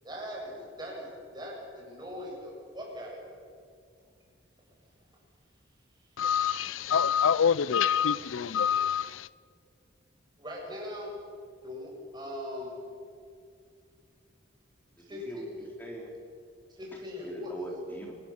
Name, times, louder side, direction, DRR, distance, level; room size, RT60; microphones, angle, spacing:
voice 1, 0.0-3.3 6.4-6.5 10.4-11.1 11.6-12.7 15.0-15.6 16.7-17.5, left 1 dB, 20° right, 7.2 m, -40 dB
voice 2, 6.2-9.3, left 7 dB, 80° left, 0.5 m, -26 dB
voice 3, 15.0-16.1 17.2-18.1, right 1 dB, 10° left, 3.4 m, -41 dB
27.0 x 19.5 x 7.2 m
head